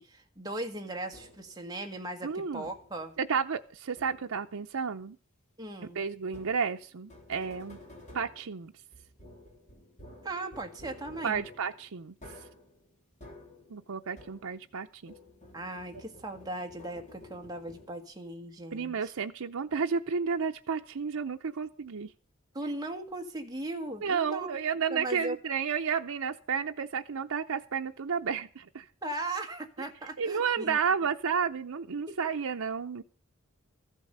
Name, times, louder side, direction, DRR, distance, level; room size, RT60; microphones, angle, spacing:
voice 1, 0.0-3.1 5.6-6.0 10.2-11.4 15.5-19.1 22.5-24.6 24.9-25.4 29.0-30.8 32.1-32.2, right 2 dB, 20° right, 4 dB, 1.5 m, -38 dB
sound 1, 1.1-1.6 2.6-3.1 4.0-4.5 6.3-14.8 15.1-18.2, left 1 dB, 35° left, 3.7 m, -52 dB
voice 2, 2.2-2.7 3.2-5.2 6.0-7.8 8.1-8.7 11.2-12.1 13.7-15.1 18.7-22.1 24.0-28.8 30.2-33.0, right 6 dB, 85° right, 4 dB, 0.6 m, -32 dB
14.5 x 8.2 x 6.6 m, 0.41 s
head